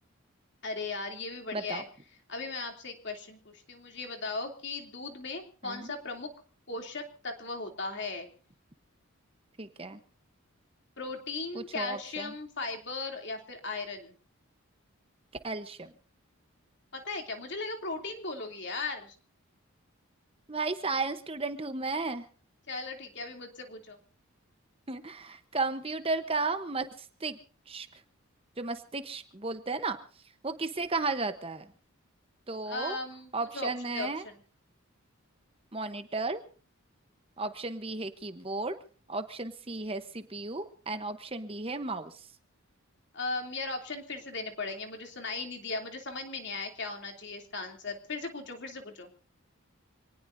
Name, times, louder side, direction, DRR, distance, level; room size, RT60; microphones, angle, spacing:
voice 1, 0.6-1.8 2.3-6.3 6.7-8.3 11.0-14.1 16.9-19.1 22.7-24.0 32.7-34.4 43.1-49.1, left 3 dB, 55° left, 3 dB, 3.0 m, -37 dB
voice 2, 1.5-1.8 5.6-5.9 9.6-10.0 11.5-12.3 15.4-15.9 20.5-22.3 24.9-27.4 27.7-27.9 28.6-30.0 30.4-31.7 32.5-33.0 33.3-34.2 35.7-36.4 37.4-38.8 39.1-42.3, right 3 dB, 25° right, 9 dB, 1.0 m, -34 dB
26.5 x 19.0 x 2.7 m, 0.40 s
head